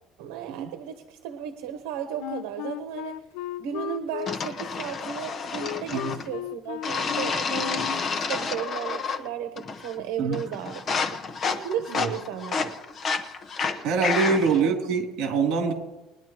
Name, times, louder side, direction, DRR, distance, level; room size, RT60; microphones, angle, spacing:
voice 1, 0.2-3.2 3.6-11.0 11.6-12.7 14.6-14.7, right 9 dB, 90° right, 6 dB, 1.1 m, -34 dB
Wind instrument woodwind instrument, 2.2-8.1, left 14 dB, 85° left, 0.5 m, -36 dB
sound 1, 4.3-6.3 6.8-9.3 9.6-10.0 10.3-14.6, left 5 dB, 30° left, 1.0 m, -30 dB
voice 2, 13.8-15.7, right 5 dB, 65° right, 1 dB, 3.0 m, -24 dB
21.5 x 10.5 x 3.0 m, 1.0 s
cardioid pair, 145°, 0 cm